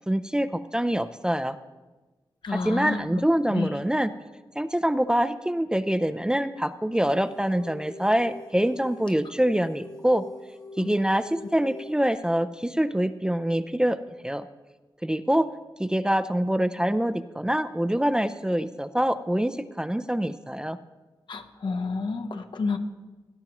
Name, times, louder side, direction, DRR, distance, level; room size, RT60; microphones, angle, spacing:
voice 1, 0.1-1.6 2.5-4.1 4.6-10.2 10.8-14.0 14.2-14.5 15.0-15.5 15.8-20.8, right 1 dB, 10° right, 10 dB, 0.4 m, -25 dB
voice 2, 2.4-3.0 3.5-3.7 10.8-11.0 21.3-22.8, left 4 dB, 65° left, 7 dB, 0.9 m, -30 dB
sound 1, 7.0-12.1, left 2 dB, 50° left, 1.4 m, -43 dB
17.5 x 10.5 x 3.0 m, 1.2 s
wide cardioid pair, 75°, 9 cm